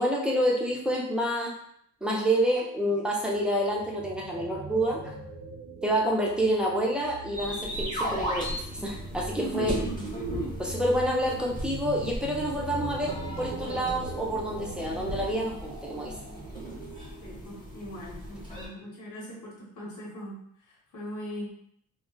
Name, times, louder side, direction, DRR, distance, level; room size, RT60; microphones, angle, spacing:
voice 1, 0.0-1.5 2.0-5.1 5.8-9.7 10.6-16.1, equal, 5° right, -2 dB, 0.6 m, -28 dB
sound 1, 3.2-17.3, right 3 dB, 60° right, 0.7 m, -41 dB
sound 2, 7.3-18.7, equal, 15° left, 1.0 m, -37 dB
voice 2, 9.4-10.1 17.2-21.5, equal, 70° left, -3 dB, 1.0 m, -39 dB
2.3 x 2.0 x 3.7 m, 0.68 s
cardioid pair, 110°, 31 cm